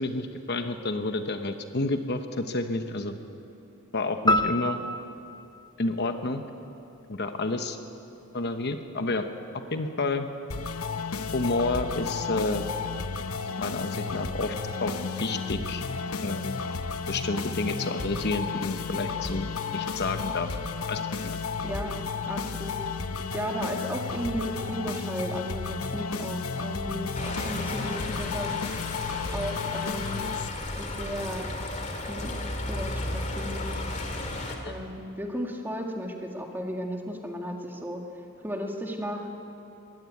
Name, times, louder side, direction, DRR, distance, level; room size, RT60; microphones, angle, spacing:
voice 1, 0.0-3.1 3.9-4.8 5.8-6.4 7.1-7.8 8.3-9.3 9.7-10.3 11.3-12.7 13.6-14.5 14.8-15.8 16.2-16.6 17.1-20.6 20.9-21.4 34.6-34.7, left 2 dB, 50° left, 7 dB, 1.0 m, -30 dB
sound 1, 4.3-6.7, left 1 dB, 20° left, 0.6 m, -28 dB
sound 2, 10.5-30.5, left 5 dB, 85° left, 1.0 m, -33 dB
voice 2, 21.6-22.0 22.3-22.8 23.3-28.8 29.3-30.2 30.8-31.5 31.9-32.3 32.7-33.9 34.7-38.0 38.4-39.4, equal, 10° right, 2 dB, 2.0 m, -34 dB
sound 3, 27.1-34.6, left 2 dB, 35° left, 2.4 m, -34 dB
22.0 x 16.0 x 9.4 m, 2.8 s
head